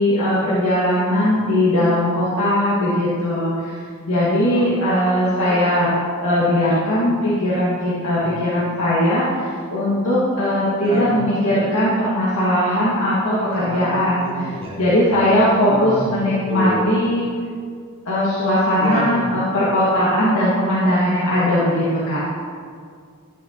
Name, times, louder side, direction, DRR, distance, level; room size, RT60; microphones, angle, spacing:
voice 1, 0.0-5.9 6.2-17.3 18.1-22.2, left 1 dB, 80° left, -9 dB, 1.9 m, -19 dB
voice 2, 2.7-3.1 4.5-4.7 5.5-5.6 8.1-8.3 10.8-11.2 13.5-16.1 16.5-16.9 18.8-19.3, right 1 dB, 25° right, -5 dB, 2.0 m, -29 dB
13.0 x 9.4 x 2.9 m, 2.1 s
head